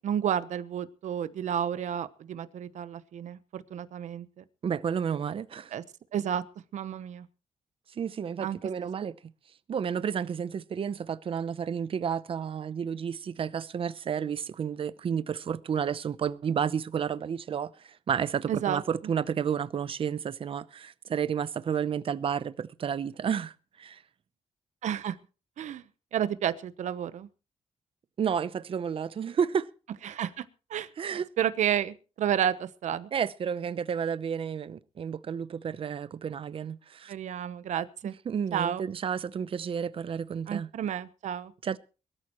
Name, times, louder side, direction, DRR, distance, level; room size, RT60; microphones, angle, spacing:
voice 1, 0.0-4.4 5.7-5.8 6.1-6.4 6.7-7.3 8.4-8.6 18.5-18.8 24.8-25.2 25.6-25.8 26.1-27.3 30.0-30.4 30.7-33.1 37.1-38.1 38.5-38.8 40.5-41.5, right 9 dB, 80° right, 1.0 m, -31 dB
voice 2, 4.6-5.8 8.0-9.1 9.7-24.0 28.2-29.7 31.0-31.3 33.1-37.1 38.3-40.7 41.6-41.8, right 7 dB, 50° right, 0.7 m, -31 dB
22.0 x 13.5 x 3.1 m
cardioid pair, 125°, 12 cm